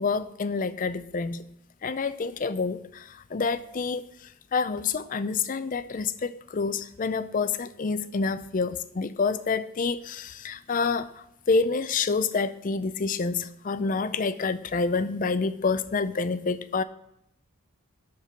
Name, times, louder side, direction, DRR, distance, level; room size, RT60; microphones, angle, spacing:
voice 1, 0.0-1.4 1.8-4.1 4.5-16.8, left 4 dB, 35° left, 14 dB, 0.4 m, -28 dB
11.0 x 4.6 x 5.7 m, 0.78 s
head